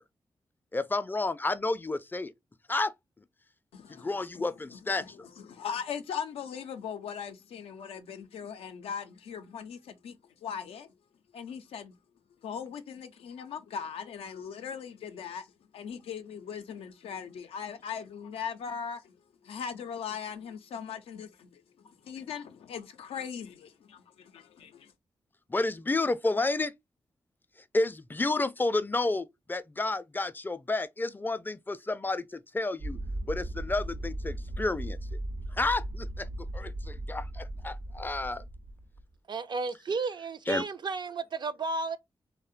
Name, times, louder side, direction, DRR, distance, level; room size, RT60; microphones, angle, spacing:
voice 1, 0.7-2.3 2.7-2.9 3.9-5.3 25.5-26.7 27.7-33.0 33.3-35.2 35.5-36.3 36.5-38.4 40.5-40.6, left 2 dB, 20° left, 0.3 m, -31 dB
voice 2, 3.7-10.9 11.3-12.0 12.4-15.5 15.7-19.2 19.4-24.9, left 7 dB, 90° left, 0.4 m, -40 dB
sound 1, 32.8-39.0, right 1 dB, 85° right, 0.7 m, -37 dB
voice 3, 39.3-42.0, right 4 dB, 50° right, 0.4 m, -33 dB
2.7 x 2.1 x 2.3 m
supercardioid pair, 45°, 10 cm